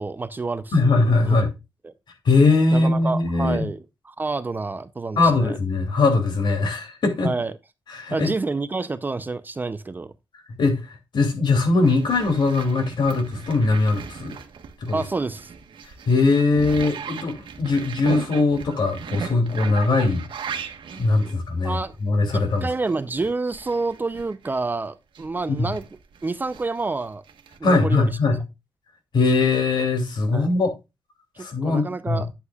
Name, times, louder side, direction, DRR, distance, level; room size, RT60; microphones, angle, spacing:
voice 1, 0.0-0.9 1.2-1.4 1.8-1.9 2.7-5.6 7.2-7.5 8.1-10.1 14.9-15.5 21.2-21.4 21.6-21.9 22.3-25.8 26.2-27.2 27.6-28.1 30.3-30.5 31.4-32.3, right 3 dB, 25° right, 0.5 m, -28 dB
voice 2, 0.7-1.5 2.2-3.7 5.2-7.3 7.9-8.3 10.6-14.4 14.8-15.0 16.1-20.3 21.0-22.7 25.5-25.7 27.6-28.4 29.1-30.7 31.4-32.2, left 3 dB, 65° left, 2.7 m, -21 dB
sound 1, 11.8-24.7 25.1-27.6, right 6 dB, 85° right, 1.3 m, -37 dB
9.6 x 8.3 x 2.3 m
wide cardioid pair, 180°, 8 cm